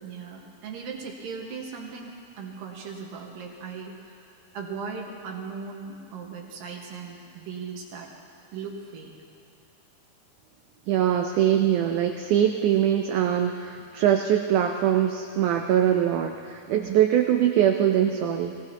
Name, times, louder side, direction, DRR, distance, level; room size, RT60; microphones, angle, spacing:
voice 1, 0.0-4.2 4.5-8.1 8.5-9.1 16.7-16.9, right 5 dB, 70° right, 0 dB, 3.1 m, -38 dB
voice 2, 10.9-18.6, right 10 dB, 90° right, 4 dB, 1.7 m, -22 dB
21.5 x 17.5 x 2.9 m, 2.6 s
omnidirectional pair, 4.3 m